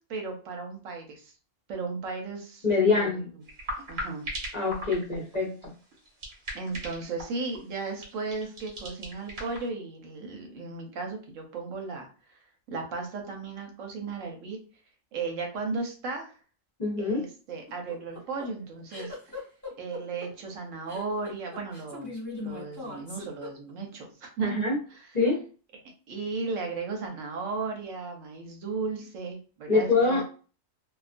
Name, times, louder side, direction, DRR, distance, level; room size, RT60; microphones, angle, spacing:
voice 1, 0.1-1.3 1.7-3.2 3.9-4.3 6.5-12.1 12.7-14.6 15.1-16.3 17.0-19.1 19.8-22.1 22.4-25.1 26.1-30.2, right 4 dB, 75° right, 2 dB, 1.0 m, -35 dB
voice 2, 2.6-3.2 4.5-5.5 16.8-17.2 24.4-24.8 25.1-25.4 29.7-30.2, left 4 dB, 40° left, -4 dB, 0.7 m, -24 dB
sound 1, 3.5-9.7, equal, 55° right, 1.1 m, -39 dB
sound 2, 17.7-23.9, left 3 dB, 15° left, 1.0 m, -40 dB
2.3 x 2.3 x 2.4 m, 0.37 s
omnidirectional pair, 1.4 m